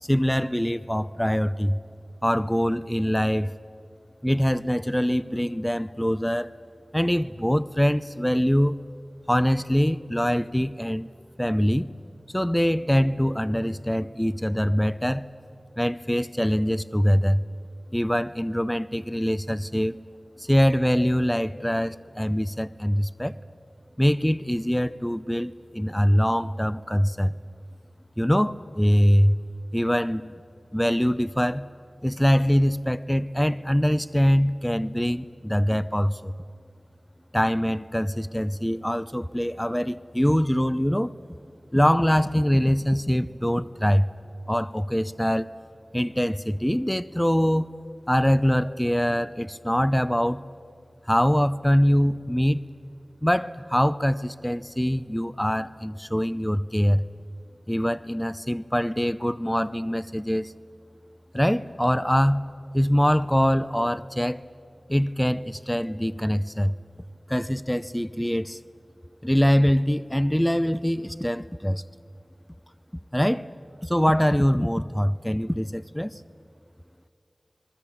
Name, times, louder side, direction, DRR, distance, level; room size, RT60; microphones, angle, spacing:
voice 1, 0.0-1.8 2.2-3.5 4.2-6.5 6.9-8.7 9.3-11.1 11.4-11.9 12.3-15.3 15.8-17.4 17.9-20.0 20.4-23.4 24.0-27.3 28.2-29.4 29.7-30.4 30.7-31.7 32.0-36.3 37.3-41.1 41.7-44.1 44.5-45.5 45.9-47.7 48.1-50.4 51.1-52.6 53.2-57.0 57.7-60.5 61.3-62.4 62.7-64.4 64.9-66.7 67.3-68.6 69.2-71.8 73.1-73.5 73.8-76.2, equal, 10° left, 15 dB, 0.6 m, -23 dB
27.5 x 21.5 x 8.7 m, 2.5 s
wide cardioid pair, 50°, 0 cm